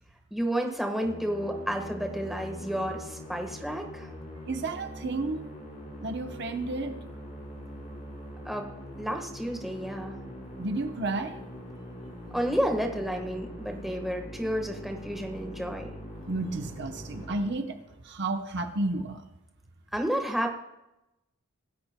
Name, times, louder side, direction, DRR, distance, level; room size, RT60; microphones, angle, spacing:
voice 1, 0.3-4.1 8.4-8.7 9.0-10.2 12.3-15.9 19.9-20.5, equal, ahead, 3 dB, 1.3 m, -31 dB
Musical instrument, 1.0-18.2, equal, 35° left, 4.5 m, -43 dB
voice 2, 4.5-5.5 6.0-7.0 10.6-11.4 16.3-17.8 18.0-19.2, right 2 dB, 50° right, 5 dB, 0.9 m, -31 dB
24.5 x 13.0 x 2.2 m, 0.93 s
head